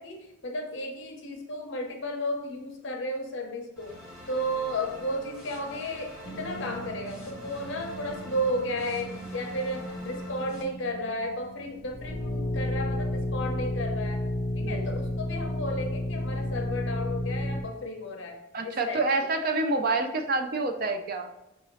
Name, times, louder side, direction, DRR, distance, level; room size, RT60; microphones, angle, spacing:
voice 1, 0.0-4.0 4.3-14.3 14.6-19.0, equal, 60° left, 3 dB, 0.7 m, -33 dB
sound 1, 3.8-10.6, left 1 dB, 5° right, 1.3 m, -45 dB
sound 2, 6.2-17.6, left 1 dB, 25° left, 0.6 m, -33 dB
voice 2, 14.6-15.0 18.5-21.3, right 3 dB, 45° right, 6 dB, 0.4 m, -28 dB
5.6 x 2.7 x 3.1 m, 0.93 s
head